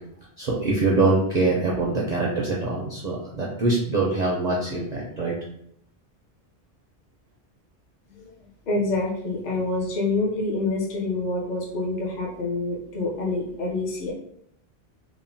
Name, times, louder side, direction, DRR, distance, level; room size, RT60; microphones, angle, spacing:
voice 1, 0.4-5.4, right 3 dB, 55° right, -3 dB, 0.5 m, -24 dB
voice 2, 8.7-14.1, left 2 dB, 50° left, -3 dB, 0.7 m, -27 dB
2.9 x 2.1 x 2.6 m, 0.74 s
omnidirectional pair, 1.1 m